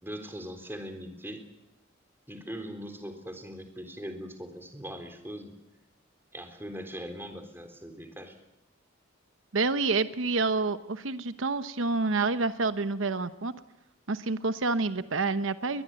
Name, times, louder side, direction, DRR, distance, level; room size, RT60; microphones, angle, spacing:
voice 1, 0.0-1.4 2.3-5.5 6.3-8.4, equal, 10° right, 6 dB, 3.8 m, -40 dB
voice 2, 9.5-13.5 14.1-15.8, right 3 dB, 85° right, 11 dB, 1.0 m, -28 dB
21.5 x 21.0 x 9.0 m, 0.91 s
head